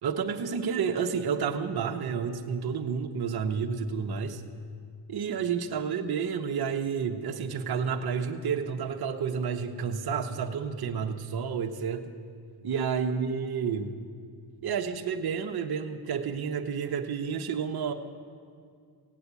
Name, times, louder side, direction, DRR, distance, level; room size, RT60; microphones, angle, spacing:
voice 1, 0.0-4.4 5.1-12.1 12.6-14.0 14.6-17.9, right 6 dB, 50° right, 4 dB, 1.0 m, -30 dB
16.5 x 8.6 x 8.2 m, 2.2 s
cardioid pair, 100°, 46 cm